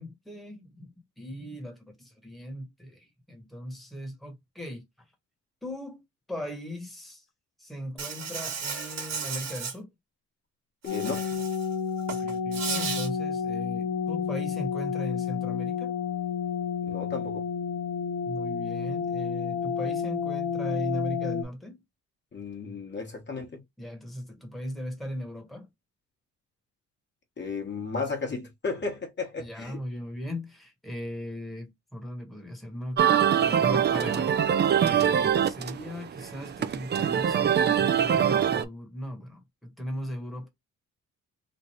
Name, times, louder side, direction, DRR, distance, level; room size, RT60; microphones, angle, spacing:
voice 1, 0.0-4.8 5.6-6.0 6.3-7.2 7.6-9.9 12.1-16.0 18.2-21.8 23.8-25.7 29.4-33.0 33.4-40.5, equal, ahead, 1.3 m, -38 dB
Insect, 8.0-9.7 10.8-11.7 12.0-13.1, right 6 dB, 60° right, 1.5 m, -34 dB
sound 1, 10.9-21.4, left 7 dB, 70° left, 0.8 m, -30 dB
voice 2, 10.9-11.3 16.8-17.4 22.3-23.6 27.4-29.8, left 4 dB, 35° left, 1.3 m, -34 dB
sound 2, 33.0-38.6, right 9 dB, 35° right, 0.5 m, -24 dB
3.2 x 2.3 x 4.3 m
cardioid pair, 90°, 30 cm